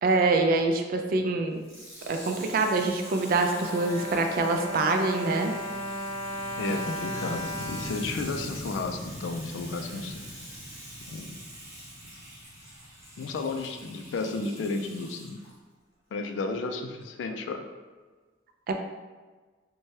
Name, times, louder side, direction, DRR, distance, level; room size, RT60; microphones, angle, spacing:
voice 1, 0.0-1.6 2.1-5.5 18.7-18.8, right 3 dB, 50° right, 5 dB, 0.3 m, -25 dB
Water tap faucet / Sink (filling or washing), 1.5-15.5 16.2-16.3, equal, 15° right, 0.8 m, -46 dB
Bowed string instrument, 2.7-9.0 9.7-9.8 10.0-10.2, equal, 15° left, 0.6 m, -36 dB
sound 1, 5.0-15.0, equal, 45° left, 0.9 m, -44 dB
voice 2, 6.6-10.2 11.1-11.4 13.2-15.4 16.1-17.6, left 3 dB, 75° left, 5 dB, 0.3 m, -33 dB
2.7 x 2.2 x 3.1 m, 1.4 s
head